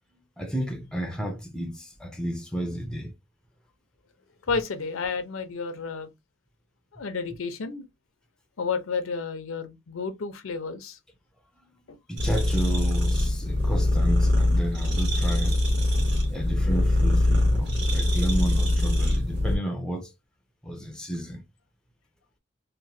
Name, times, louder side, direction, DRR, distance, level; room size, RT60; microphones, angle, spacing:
voice 1, 0.4-3.1 12.1-15.5 16.3-20.1 20.6-21.4, equal, 5° left, 0.4 m, -32 dB
voice 2, 4.5-6.1 6.9-7.8 8.6-11.0 11.9-12.0, left 5 dB, 80° left, 0.6 m, -31 dB
sound 1, 12.2-19.6, left 1 dB, 55° right, 1.1 m, -23 dB
2.9 x 2.1 x 2.6 m
head